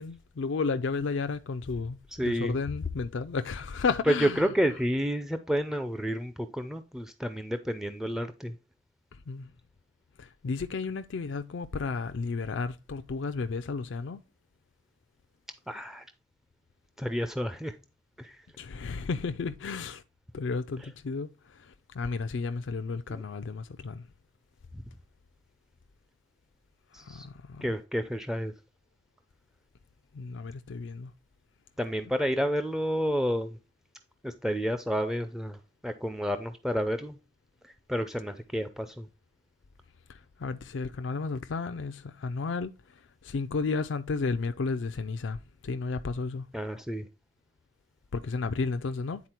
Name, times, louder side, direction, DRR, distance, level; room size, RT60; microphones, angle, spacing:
voice 1, 0.0-4.4 9.3-9.4 10.4-14.2 18.6-20.0 20.3-21.3 22.0-24.0 27.2-27.6 30.2-31.1 40.4-42.7 43.2-45.4 45.6-46.4 48.1-49.2, left 4 dB, 75° left, 0.4 m, -32 dB
voice 2, 2.1-2.6 4.0-8.5 15.7-16.0 17.0-17.7 18.2-18.4 20.8-20.9 23.1-23.2 26.9-27.3 27.6-28.5 31.8-33.6 34.2-35.6 35.8-37.2 37.9-39.1 46.5-47.1, equal, ahead, 0.4 m, -30 dB
9.6 x 4.1 x 4.3 m
head